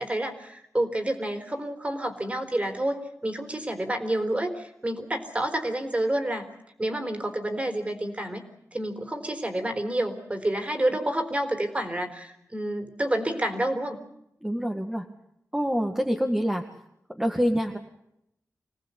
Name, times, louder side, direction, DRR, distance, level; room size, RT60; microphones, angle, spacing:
voice 1, 0.0-6.5 6.8-8.4 8.7-14.0, right 1 dB, 25° right, 7 dB, 3.8 m, -29 dB
voice 2, 14.4-15.1 15.5-16.6 17.1-17.8, equal, 10° right, 2 dB, 2.0 m, -26 dB
26.0 x 18.5 x 8.4 m, 0.79 s
wide cardioid pair, 105°, 6 cm